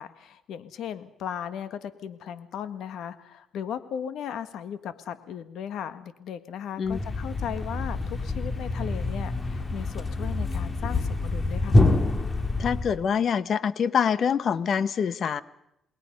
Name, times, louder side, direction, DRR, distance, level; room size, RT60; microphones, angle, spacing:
voice 1, 0.0-11.8, left 9 dB, 80° left, 11 dB, 1.7 m, -37 dB
Thump thud, 6.9-13.1, left 2 dB, 25° left, 2.3 m, -26 dB
voice 2, 12.6-15.4, left 7 dB, 55° left, 15 dB, 1.2 m, -25 dB
29.0 x 20.5 x 5.4 m, 0.79 s
cardioid pair, 90°, 0 cm